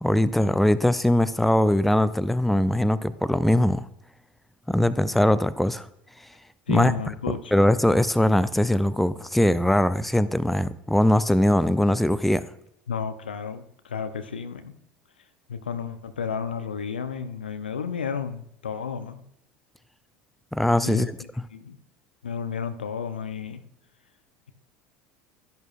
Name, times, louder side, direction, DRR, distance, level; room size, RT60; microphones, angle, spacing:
voice 1, 0.0-3.8 4.7-5.9 6.7-6.9 7.5-12.4 20.5-21.1, left 1 dB, 5° left, 15 dB, 0.5 m, -21 dB
voice 2, 6.7-7.5 12.9-14.7 15.5-19.2 20.8-21.8 22.2-23.6, left 6 dB, 80° left, 11 dB, 0.7 m, -32 dB
13.5 x 10.5 x 2.5 m, 0.75 s
figure-of-eight pair, 70°, 5 cm